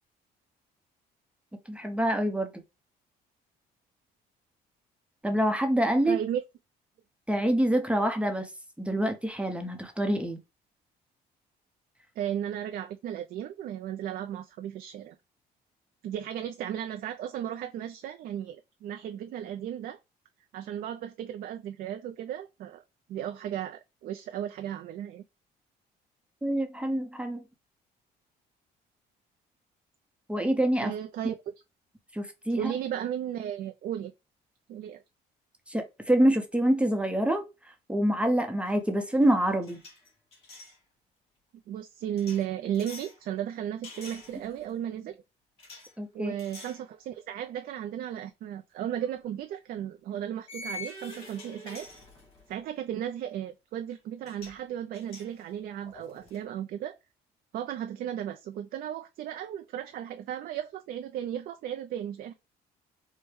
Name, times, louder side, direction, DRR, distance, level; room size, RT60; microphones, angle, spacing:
voice 1, 1.7-2.5 5.2-6.2 7.3-8.5 8.8-10.4 26.4-27.4 30.3-30.9 32.1-32.7 35.7-37.4 37.9-39.8 46.0-46.3, right 1 dB, 5° right, 0.7 m, -26 dB
voice 2, 6.0-6.4 12.2-15.1 16.0-20.0 20.5-22.8 23.1-25.2 30.8-31.4 32.6-34.1 34.7-35.0 41.7-45.2 46.1-51.9 52.5-57.0 57.5-62.3, right 10 dB, 60° right, 0.4 m, -35 dB
sound 1, 38.6-38.9 39.1-40.8 42.2-43.2 43.8-44.7 45.6-45.9 46.4-46.8 47.3-47.5 49.0-49.1 50.5-52.5 53.9-54.0 54.2-54.6 54.9-56.4, left 2 dB, 35° left, 2.1 m, -46 dB
4.7 x 2.1 x 3.1 m
cardioid pair, 110°, 17 cm